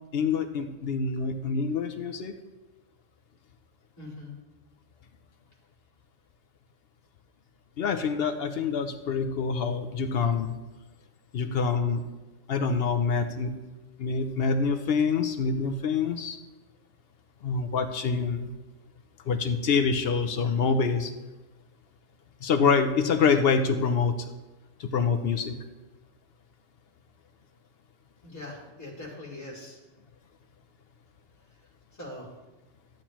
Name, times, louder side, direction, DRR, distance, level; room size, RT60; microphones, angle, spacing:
voice 1, 0.1-2.3 7.8-10.5 11.3-12.0 12.5-13.5 14.0-16.4 17.4-18.5 19.3-21.1 22.4-24.3 24.8-25.6, left 5 dB, 60° left, 8 dB, 0.7 m, -26 dB
voice 2, 4.0-4.4 28.2-29.8 32.0-32.3, left 2 dB, 15° left, -5 dB, 2.4 m, -41 dB
13.0 x 8.5 x 3.0 m, 1.1 s
omnidirectional pair, 1.3 m